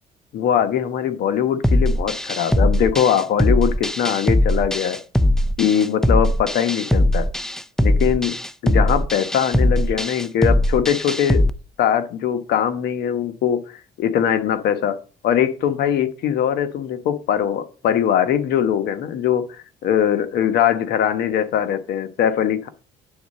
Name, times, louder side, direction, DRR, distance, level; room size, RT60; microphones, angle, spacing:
voice 1, 0.3-5.0 5.6-7.3 7.8-8.4 8.6-11.4 11.8-13.6 14.0-15.0 15.2-22.7, left 9 dB, 70° left, 9 dB, 1.1 m, -21 dB
sound 1, 1.6-11.5, left 1 dB, 5° left, 0.4 m, -20 dB
9.3 x 4.0 x 6.4 m, 0.37 s
cardioid pair, 110°, 17 cm